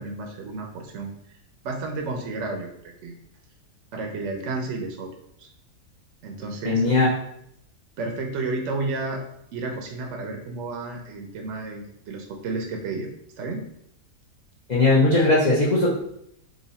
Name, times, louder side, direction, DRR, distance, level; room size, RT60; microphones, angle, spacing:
voice 1, 0.0-1.4 1.6-3.2 3.9-5.1 5.4-5.5 6.2-6.8 8.0-9.2 9.5-13.1 13.4-13.6, right 3 dB, 65° right, 2 dB, 0.8 m, -32 dB
voice 2, 6.6-7.1 14.7-15.9, left 2 dB, 60° left, -6 dB, 0.4 m, -19 dB
3.0 x 2.5 x 4.0 m, 0.74 s
omnidirectional pair, 1.7 m